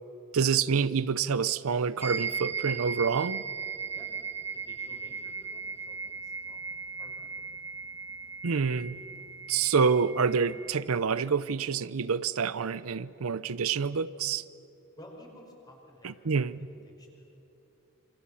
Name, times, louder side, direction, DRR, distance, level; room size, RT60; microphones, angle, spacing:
voice 1, 0.3-3.4 8.4-9.0 9.5-14.4 16.0-16.6, right 6 dB, 90° right, 0.6 m, -27 dB
sound 1, 2.0-10.7, right 5 dB, 10° right, 1.5 m, -37 dB
voice 2, 4.5-7.3 15.0-17.3, left 1 dB, 20° left, 5.4 m, -53 dB
27.5 x 26.0 x 7.1 m
head